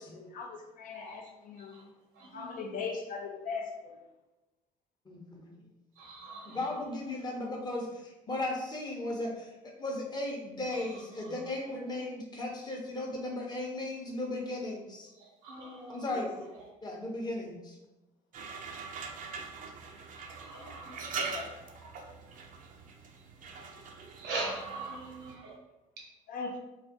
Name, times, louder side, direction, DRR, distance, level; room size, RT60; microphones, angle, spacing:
voice 1, 0.1-1.8 2.3-4.0 16.1-16.3 21.2-21.5 26.3-26.6, left 4 dB, 50° left, 4 dB, 0.4 m, -39 dB
voice 2, 0.9-1.2 1.7-1.8 2.2-2.6 6.0-7.0 10.7-10.9 11.2-11.8 15.2-16.1 16.4-16.5 20.1-21.0 24.1-25.6, right 2 dB, 75° right, -2 dB, 0.8 m, -41 dB
voice 3, 5.1-5.5 6.5-15.1 15.9-16.3 16.8-17.8, left 2 dB, 25° left, 0 dB, 0.7 m, -36 dB
sound 1, 18.3-25.3, right 4 dB, 50° right, 0.4 m, -42 dB
2.3 x 2.2 x 2.6 m, 1.0 s
hypercardioid pair, 60°, 18 cm